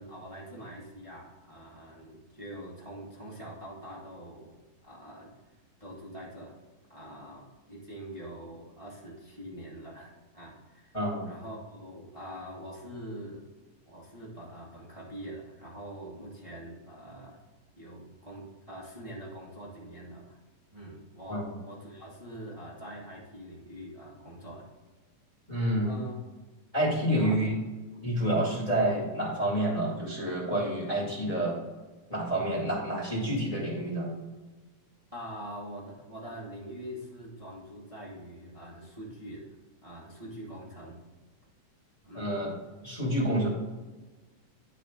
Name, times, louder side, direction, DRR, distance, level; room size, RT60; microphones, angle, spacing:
voice 1, 0.0-4.5 4.8-5.4 5.8-6.6 6.9-11.0 11.2-13.5 13.9-17.4 17.7-20.4 20.7-24.7 25.8-26.1 27.0-27.4 27.9-28.1 35.1-39.5 39.8-41.1 42.0-42.3, equal, 20° right, -5 dB, 0.8 m, -44 dB
voice 2, 10.9-11.3 21.3-21.5 25.5-26.0 26.7-27.5 28.0-31.6 32.1-34.1 42.1-42.5 42.8-43.5, right 1 dB, 10° left, -4 dB, 1.9 m, -28 dB
11.5 x 4.2 x 3.8 m, 1.2 s
omnidirectional pair, 3.7 m